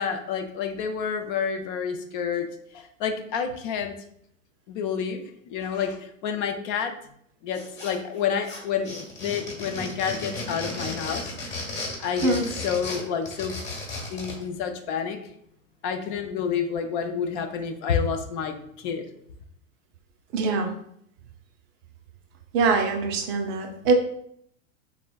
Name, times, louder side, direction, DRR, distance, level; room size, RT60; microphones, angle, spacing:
voice 1, 0.0-2.5 2.7-3.9 4.7-5.2 5.5-6.9 7.4-11.3 12.0-12.4 12.6-13.5 14.1-15.2 15.8-19.0, left 7 dB, 40° left, 6 dB, 0.4 m, -29 dB
sound 1, 7.5-8.2 8.4-14.4, left 2 dB, 25° left, 1.1 m, -34 dB
voice 2, 20.3-20.7 22.5-23.9, right 4 dB, 30° right, 4 dB, 0.4 m, -23 dB
3.5 x 2.1 x 2.2 m, 0.69 s
hypercardioid pair, 115°, 41 cm